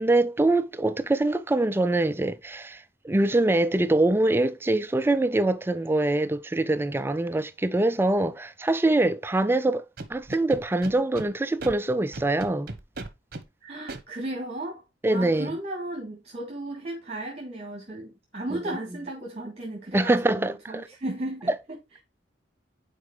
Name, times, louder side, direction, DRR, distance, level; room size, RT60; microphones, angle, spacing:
voice 1, 0.0-9.8 10.1-12.7 15.0-15.6 19.9-20.8 21.5-21.6, right 2 dB, 10° right, 0.3 m, -24 dB
Scratching (performance technique), 10.0-11.3 11.6-11.7 12.1-13.4 13.9-14.0, right 2 dB, 55° right, 1.1 m, -36 dB
voice 2, 13.6-14.8 15.1-22.0, right 1 dB, 35° right, 2.0 m, -35 dB
9.8 x 4.6 x 3.2 m
head